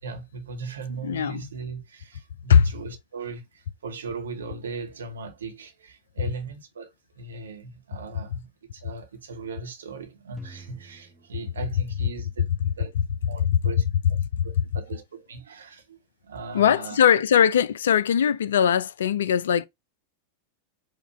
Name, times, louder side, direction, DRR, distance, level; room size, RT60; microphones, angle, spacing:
voice 1, 0.0-12.5 12.8-12.9 13.3-13.8 14.4-17.0, right 4 dB, 65° right, 1.0 m, -38 dB
voice 2, 1.0-1.5 2.5-2.7 13.0-13.1 13.4-13.5 14.4-14.5 16.5-19.7, left 8 dB, 65° left, 0.3 m, -20 dB
sound 1, 10.4-12.5, right 3 dB, 5° right, 0.9 m, -50 dB
4.7 x 2.3 x 4.2 m
figure-of-eight pair, 90°, 0 cm